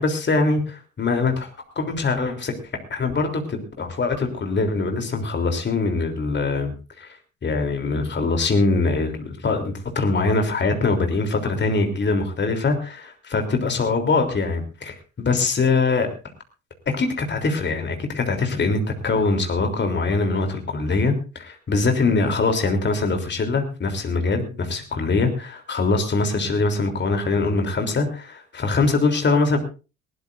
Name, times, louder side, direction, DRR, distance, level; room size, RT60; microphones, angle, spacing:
voice 1, 0.0-1.5 1.7-2.5 2.9-7.2 7.4-16.1 16.9-29.6, left 3 dB, 25° left, 5 dB, 3.4 m, -23 dB
20.0 x 18.5 x 2.6 m, 0.33 s
figure-of-eight pair, 60°, 40 cm